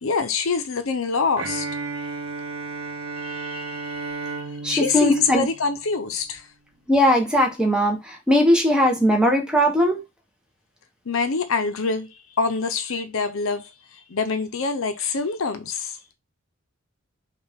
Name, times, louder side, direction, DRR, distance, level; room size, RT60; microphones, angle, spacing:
voice 1, 0.0-1.7 3.2-4.4 4.7-6.5 11.1-16.0, left 4 dB, 75° left, 0.7 m, -26 dB
Bowed string instrument, 1.4-6.2, right 4 dB, 85° right, 0.7 m, -33 dB
voice 2, 4.6-5.5 6.9-10.0, equal, 5° right, 0.9 m, -19 dB
5.5 x 2.4 x 3.4 m
head